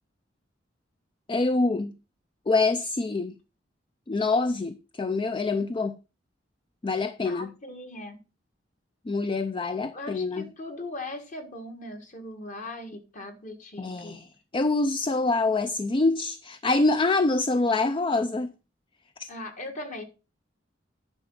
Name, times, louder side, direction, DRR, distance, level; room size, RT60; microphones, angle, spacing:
voice 1, 1.3-1.9 2.5-3.4 4.1-6.0 6.8-7.5 9.1-10.5 13.8-18.5 19.2-19.3, left 3 dB, 25° left, 0.4 m, -25 dB
voice 2, 7.2-8.2 9.9-14.2 19.3-20.0, left 2 dB, 45° left, 1.5 m, -39 dB
9.8 x 5.0 x 5.4 m
head